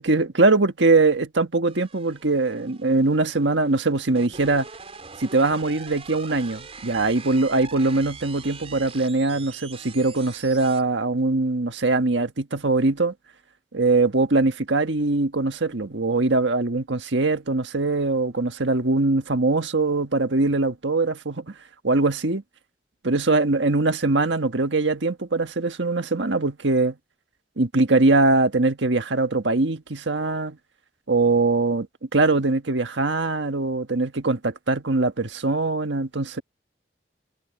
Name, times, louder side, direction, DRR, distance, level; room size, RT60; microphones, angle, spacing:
voice 1, 0.0-4.7 5.2-13.1 13.7-21.5 21.8-22.4 23.0-27.0 27.6-30.6 31.1-31.9 32.1-36.4, right 3 dB, 80° right, 1.5 m, -22 dB
sound 1, 1.7-10.8, right 5 dB, 35° right, 4.4 m, -43 dB
head